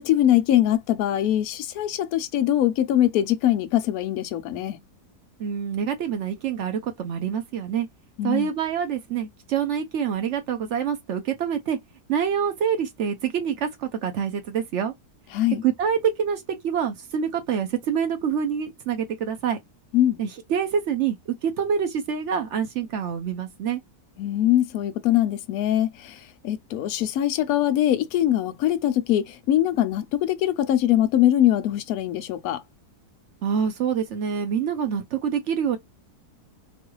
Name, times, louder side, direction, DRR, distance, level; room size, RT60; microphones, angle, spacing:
voice 1, 0.0-4.8 8.2-8.5 15.3-15.6 19.9-20.2 24.2-32.6, left 12 dB, 70° left, 1.0 m, -22 dB
voice 2, 5.4-7.9 8.2-11.8 12.1-14.9 15.5-19.6 20.2-23.8 33.4-35.8, right 7 dB, 65° right, 0.7 m, -26 dB
3.1 x 2.3 x 3.0 m
omnidirectional pair, 1.7 m